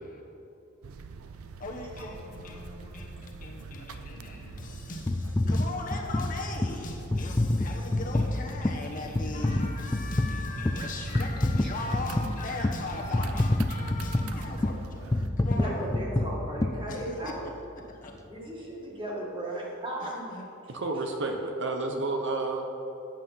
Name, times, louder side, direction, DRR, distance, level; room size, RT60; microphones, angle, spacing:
sound 1, 0.8-15.3, right 4 dB, 85° right, 0.5 m, -45 dB
voice 1, 1.6-15.9 16.9-17.5 17.9-18.1 20.0-20.5, left 2 dB, 40° left, -1 dB, 1.1 m, -38 dB
sound 2, 5.1-17.5 18.0-18.2, left 1 dB, 15° left, 0.3 m, -29 dB
voice 2, 15.6-17.5 18.2-20.1, right 1 dB, 25° right, -3 dB, 1.8 m, -36 dB
voice 3, 20.7-22.7, right 2 dB, 60° right, 3 dB, 0.9 m, -30 dB
8.8 x 7.4 x 5.7 m, 2.8 s
head